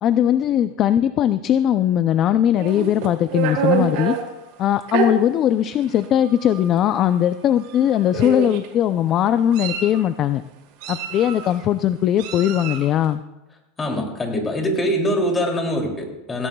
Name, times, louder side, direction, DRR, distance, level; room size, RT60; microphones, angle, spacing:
voice 1, 0.0-4.2 4.6-10.4 10.9-13.2, left 10 dB, 35° left, 12 dB, 0.4 m, -19 dB
Meow, 2.6-4.2 4.9-5.1 5.9-6.0 6.4-6.6 7.6-7.8 8.1-8.7 9.3-10.0 10.8-11.5 12.2-12.9, right 7 dB, 60° right, 2.5 m, -26 dB
voice 2, 13.8-16.5, equal, 15° left, 1 dB, 2.7 m, -23 dB
17.5 x 17.0 x 2.3 m, 1.0 s
supercardioid pair, 150°, 0 cm